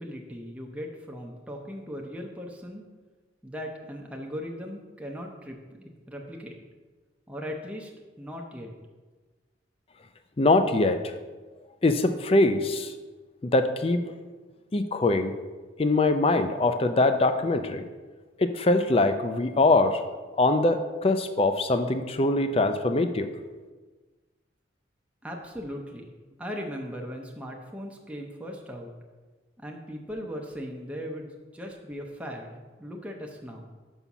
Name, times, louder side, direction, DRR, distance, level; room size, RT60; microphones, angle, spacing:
voice 1, 0.0-2.8 3.4-6.6 7.3-7.9 8.2-8.7 25.2-26.1 26.4-28.9 29.6-33.7, equal, 5° right, 0 dB, 0.7 m, -38 dB
voice 2, 10.4-11.0 11.8-12.9 13.4-14.1 14.7-15.3 15.8-17.8 18.4-20.0 20.4-23.3, left 2 dB, 30° left, 9 dB, 0.4 m, -23 dB
5.6 x 5.5 x 6.0 m, 1.3 s
head